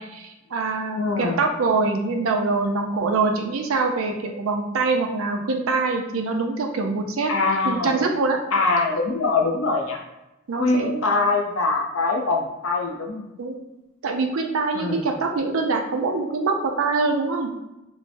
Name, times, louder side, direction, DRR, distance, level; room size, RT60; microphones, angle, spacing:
voice 1, 0.0-7.3 7.6-8.4 10.5-11.0 13.4-13.6 14.0-17.5, right 3 dB, 85° right, 3 dB, 0.5 m, -24 dB
voice 2, 0.9-1.4 7.3-8.0 8.5-10.0 10.5-13.3 14.7-15.1, left 3 dB, 75° left, 1 dB, 0.5 m, -23 dB
3.2 x 2.1 x 2.6 m, 0.94 s
head